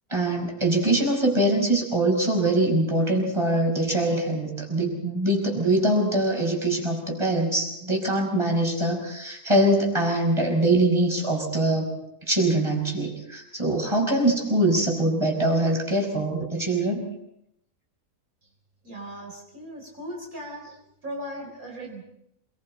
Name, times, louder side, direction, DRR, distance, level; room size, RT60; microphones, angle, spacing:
voice 1, 0.1-11.9 12.3-17.0, right 1 dB, 20° right, 0 dB, 5.6 m, -23 dB
voice 2, 18.8-20.8 21.0-22.0, equal, 65° right, 0 dB, 4.5 m, -37 dB
27.5 x 22.0 x 4.3 m, 0.77 s
omnidirectional pair, 1.6 m